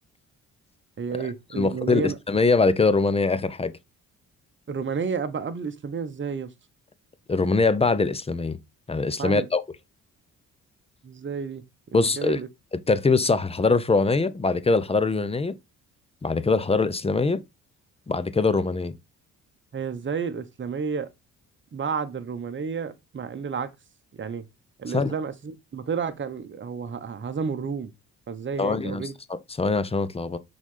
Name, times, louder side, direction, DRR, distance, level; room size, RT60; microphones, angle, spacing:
voice 1, 1.0-2.2 4.7-6.5 9.2-9.5 11.0-11.6 11.9-12.5 19.7-21.1 21.7-23.7 24.1-24.4 24.8-27.9 28.3-29.1, right 6 dB, 35° right, 1.1 m, -31 dB
voice 2, 1.6-3.7 7.3-8.6 8.9-9.6 11.9-12.4 12.9-15.6 16.2-17.4 18.1-18.9 24.9-25.1 28.6-29.0 29.3-30.4, left 3 dB, 20° left, 0.7 m, -23 dB
6.1 x 4.1 x 3.8 m
cardioid pair, 75°, 31 cm